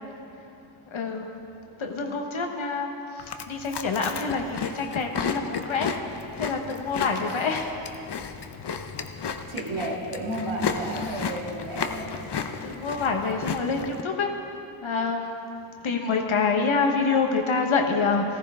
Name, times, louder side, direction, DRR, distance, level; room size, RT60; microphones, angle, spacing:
voice 1, 0.9-1.3 1.8-2.9 3.2-5.9 6.4-7.8 12.6-14.3 14.8-15.4 15.8-18.4, left 4 dB, 70° left, 3 dB, 1.3 m, -26 dB
voice 2, 1.7-2.1 9.5-12.1, right 1 dB, 70° right, -3 dB, 2.2 m, -32 dB
Chewing mastication, 3.2-14.0, left 6 dB, 55° left, 0.8 m, -33 dB
14.5 x 14.0 x 3.7 m, 2.7 s
wide cardioid pair, 70°, 50 cm